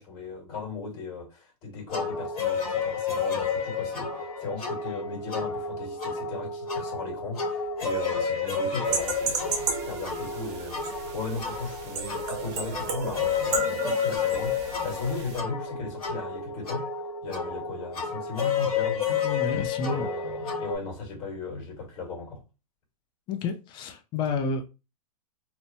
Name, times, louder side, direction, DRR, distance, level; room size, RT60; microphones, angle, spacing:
voice 1, 0.0-16.9 17.2-19.2 19.7-22.4, left 4 dB, 40° left, 1.6 m, -37 dB
sound 1, 1.9-20.8, left 5 dB, 70° left, 1.4 m, -31 dB
sound 2, 8.8-15.4, right 5 dB, 50° right, 0.8 m, -34 dB
voice 2, 19.2-20.1 23.3-24.7, left 4 dB, 25° left, 0.4 m, -30 dB
2.9 x 2.1 x 2.6 m
hypercardioid pair, 135°, 20 cm